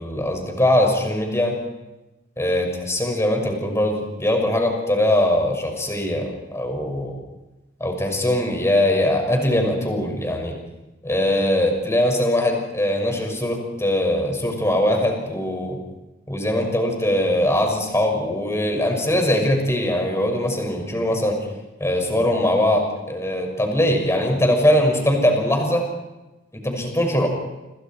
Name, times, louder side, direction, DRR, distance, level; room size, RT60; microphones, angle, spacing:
voice 1, 0.0-1.6 2.4-7.2 7.8-10.5 11.0-15.8 16.3-21.4 21.8-25.8 26.6-27.3, left 1 dB, 15° left, 3 dB, 6.1 m, -21 dB
29.5 x 27.5 x 4.6 m, 1.0 s
head